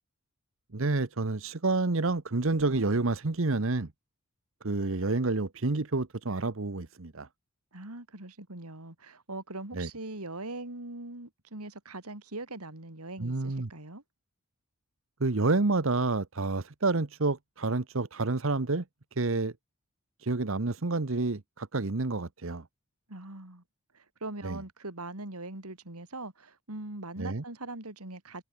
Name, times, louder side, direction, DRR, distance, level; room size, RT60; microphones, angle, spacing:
voice 1, 0.7-3.9 4.6-7.3 9.7-9.9 13.2-13.7 15.2-18.8 19.2-19.5 20.2-22.6 24.4-24.6 27.2-27.4, right 3 dB, 65° right, 1.0 m, -29 dB
voice 2, 7.7-14.0 23.1-23.6 23.9-28.4, right 2 dB, 90° right, 3.8 m, -41 dB
head